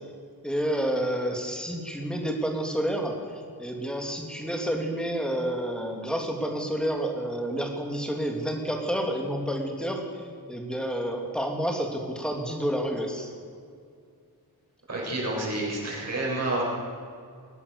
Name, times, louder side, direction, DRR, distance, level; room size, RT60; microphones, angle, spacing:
voice 1, 0.4-13.3, equal, ahead, 2 dB, 3.1 m, -29 dB
voice 2, 14.9-16.6, right 2 dB, 45° right, -4 dB, 7.8 m, -29 dB
22.0 x 18.5 x 7.0 m, 2.2 s
wide cardioid pair, 160°, 36 cm